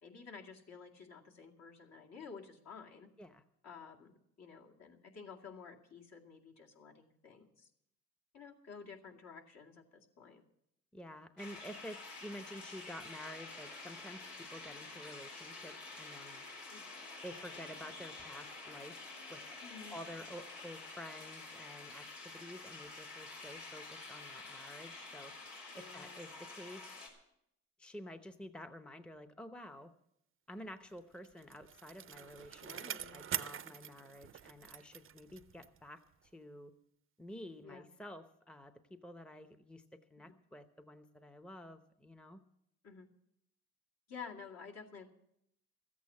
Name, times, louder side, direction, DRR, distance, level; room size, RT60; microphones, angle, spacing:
voice 1, 0.0-3.1 3.6-4.1 4.4-7.7 8.3-10.4 16.7-17.0 19.6-20.0 25.7-26.2 32.6-33.3 37.6-37.9 42.8-43.1 44.1-45.1, left 5 dB, 60° left, 0 dB, 2.3 m, -52 dB
voice 2, 10.9-16.4 17.2-19.0 19.3-19.4 19.9-25.3 25.7-26.8 27.8-29.9 30.5-32.7 33.1-36.7 37.2-42.4, left 1 dB, 5° left, 9 dB, 0.7 m, -50 dB
sound 1, 11.4-27.1, left 3 dB, 90° left, 3.6 m, -49 dB
Bicycle, 31.0-35.9 36.2-36.3, right 10 dB, 45° right, 0.6 m, -44 dB
13.5 x 8.5 x 8.4 m, 0.78 s
cardioid pair, 90°, 30 cm